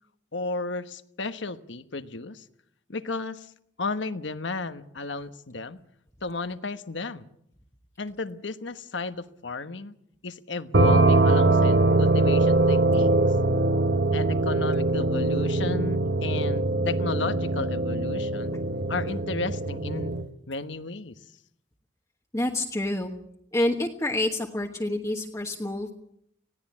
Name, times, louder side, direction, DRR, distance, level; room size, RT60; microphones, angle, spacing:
voice 1, 0.3-2.4 2.9-3.5 3.8-5.8 6.2-7.3 8.0-9.9 10.2-13.1 14.1-18.6 18.9-20.2 20.5-21.1, left 3 dB, 75° left, 11 dB, 1.2 m, -33 dB
sound 1, 10.7-20.2, right 2 dB, 65° right, 1.2 m, -22 dB
voice 2, 22.3-23.1 23.5-25.9, left 1 dB, 15° left, 2 dB, 1.3 m, -28 dB
20.0 x 17.0 x 8.6 m, 0.72 s
head